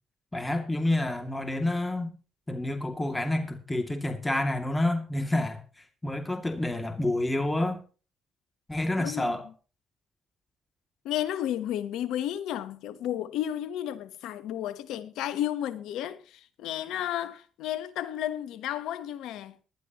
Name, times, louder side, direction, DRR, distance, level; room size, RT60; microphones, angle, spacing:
voice 1, 0.3-2.1 2.5-5.6 6.0-7.8 8.7-9.5, left 1 dB, 15° left, 2.5 m, -28 dB
voice 2, 9.0-9.4 11.0-19.6, left 11 dB, 80° left, 1.1 m, -32 dB
19.5 x 12.0 x 3.0 m
hypercardioid pair, 50°, 0 cm